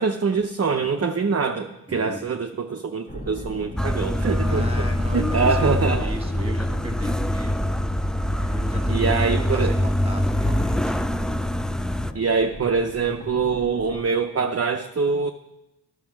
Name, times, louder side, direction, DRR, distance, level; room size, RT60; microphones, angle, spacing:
voice 1, 0.0-4.9 5.1-6.1 8.9-9.7 12.1-15.3, right 5 dB, 35° right, 5 dB, 0.6 m, -24 dB
voice 2, 1.9-2.2 4.4-7.7 8.3-10.9 12.0-12.2, right 1 dB, 15° right, 3 dB, 1.8 m, -35 dB
sound 1, 3.1-14.0, left 1 dB, 20° left, 1.3 m, -39 dB
sound 2, 3.8-12.1, left 1 dB, ahead, 0.3 m, -24 dB
11.0 x 6.4 x 6.0 m, 0.94 s
cardioid pair, 40°, 41 cm